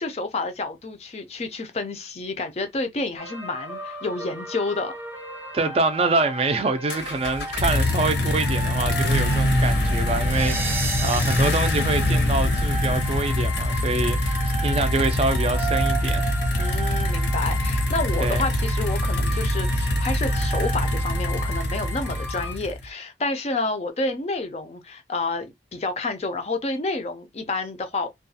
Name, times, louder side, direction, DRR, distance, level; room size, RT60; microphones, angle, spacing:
voice 1, 0.0-4.9 16.6-28.1, left 3 dB, 35° left, 0.4 m, -29 dB
sound 1, 3.2-22.5, right 2 dB, 10° right, 0.7 m, -35 dB
voice 2, 5.5-16.8 18.2-18.5, right 3 dB, 35° right, 0.4 m, -26 dB
sound 2, 6.9-22.9, left 1 dB, 90° left, 0.8 m, -24 dB
2.3 x 2.2 x 2.7 m
head